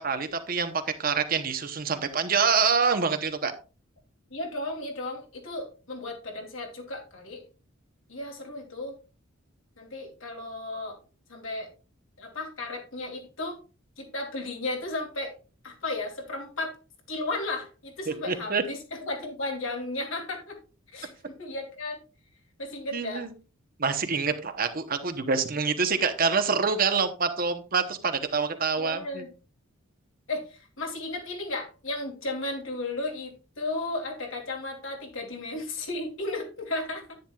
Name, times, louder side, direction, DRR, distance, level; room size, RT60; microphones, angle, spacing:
voice 1, 0.0-3.5 18.3-18.6 22.9-23.3 23.8-29.2, right 5 dB, 45° right, 8 dB, 0.9 m, -26 dB
voice 2, 4.3-7.4 8.1-8.9 9.8-11.0 11.3-11.7 12.2-13.6 14.0-15.3 15.6-16.8 17.1-20.6 20.9-22.0 22.6-23.2 28.8-29.3 30.3-37.2, left 2 dB, 65° left, 1 dB, 2.9 m, -34 dB
10.5 x 9.2 x 2.3 m, 0.34 s
head